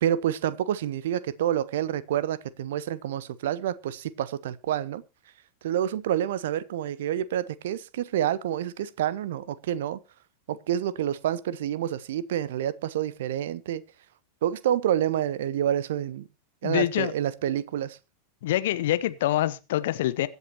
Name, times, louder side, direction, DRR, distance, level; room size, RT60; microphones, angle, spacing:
voice 1, 0.0-5.0 5.6-10.0 10.5-13.8 14.4-16.3 16.6-18.0, right 11 dB, 55° right, 0.7 m, -28 dB
voice 2, 16.6-17.1 18.4-20.3, left 14 dB, 55° left, 0.9 m, -25 dB
23.0 x 8.1 x 2.9 m
figure-of-eight pair, 90°, 0 cm